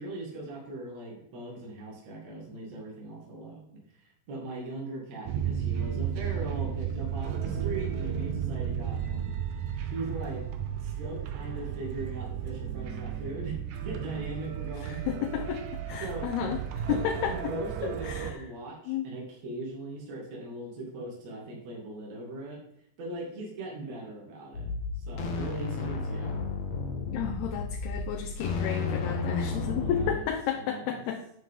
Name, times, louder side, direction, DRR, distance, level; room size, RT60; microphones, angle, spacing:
voice 1, 0.0-10.4 10.8-13.6 13.8-15.3 16.0-16.3 16.9-22.6 23.0-24.7 25.0-26.3 29.8-30.3 30.5-31.0, right 2 dB, 45° right, -3 dB, 3.3 m, -40 dB
sound 1, 5.3-18.3, right 9 dB, 75° right, 1.8 m, -34 dB
voice 2, 14.8-17.4 17.8-18.4 18.9-19.1 27.1-31.2, left 8 dB, 80° left, 2 dB, 2.8 m, -32 dB
sound 2, 24.5-30.2, left 4 dB, 55° left, 2.1 m, -32 dB
10.0 x 7.5 x 3.7 m, 0.74 s
omnidirectional pair, 4.5 m